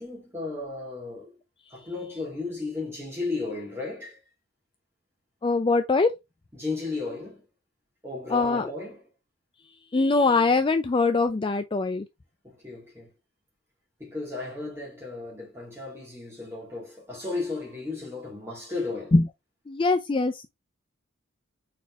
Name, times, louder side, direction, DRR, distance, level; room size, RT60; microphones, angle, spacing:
voice 1, 0.0-1.4 1.7-4.2 6.5-7.4 8.0-9.0 12.4-13.1 14.0-19.1, left 3 dB, 10° right, 2.9 m, -34 dB
voice 2, 5.4-6.1 8.3-8.7 9.9-12.1 19.1-19.2 19.7-20.5, left 3 dB, 25° left, 0.3 m, -22 dB
5.1 x 4.2 x 2.4 m
head